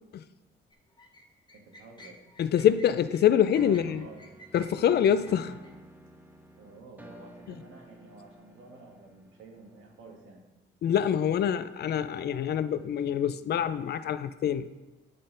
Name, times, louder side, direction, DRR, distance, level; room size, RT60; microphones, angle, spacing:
sound 1, 0.7-5.7, equal, 20° left, 1.0 m, -52 dB
voice 1, 1.5-2.2 3.7-4.2 6.6-10.4, right 3 dB, 85° right, 1 dB, 1.6 m, -51 dB
voice 2, 2.4-4.1 4.5-5.6 7.5-7.6 10.8-14.8, left 9 dB, 55° left, 13 dB, 0.4 m, -25 dB
sound 2, 3.6-10.4, right 1 dB, 10° right, 0.8 m, -52 dB
10.0 x 4.2 x 3.8 m, 1.1 s
cardioid pair, 90°, 20 cm